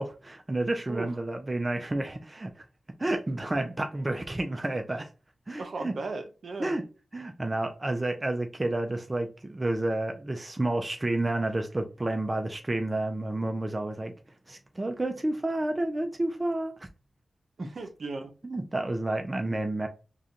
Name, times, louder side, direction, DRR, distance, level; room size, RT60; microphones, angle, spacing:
voice 1, 0.0-2.5 3.0-5.1 5.5-5.9 6.6-6.8 7.1-14.1 14.5-16.9 17.6-17.7 18.4-19.9, right 2 dB, 30° right, 0.6 m, -30 dB
voice 2, 5.6-6.8 17.6-18.3, right 3 dB, 70° right, 0.8 m, -36 dB
4.9 x 2.4 x 2.8 m
cardioid pair, 55°, 0 cm